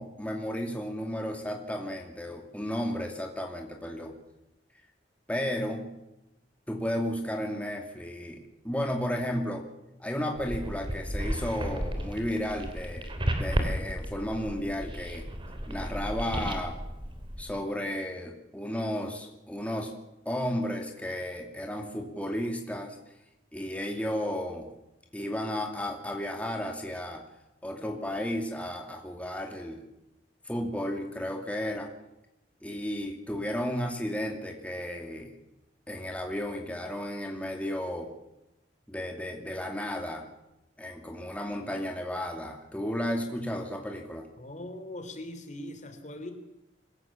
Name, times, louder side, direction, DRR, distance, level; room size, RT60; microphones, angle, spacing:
voice 1, 0.0-4.1 5.3-5.9 6.7-9.6 10.0-13.1 13.4-15.3 15.7-16.8 17.4-19.9 20.2-23.0 23.5-24.7 25.1-27.3 27.6-29.8 30.4-31.9 32.6-35.3 35.9-38.1 38.9-40.3 40.8-44.3, equal, 10° left, 2 dB, 2.5 m, -33 dB
sound 1, 10.3-17.5, equal, 30° right, 3.3 m, -33 dB
voice 2, 44.4-46.3, left 1 dB, 45° left, 8 dB, 3.2 m, -41 dB
26.0 x 16.0 x 7.3 m, 0.90 s
head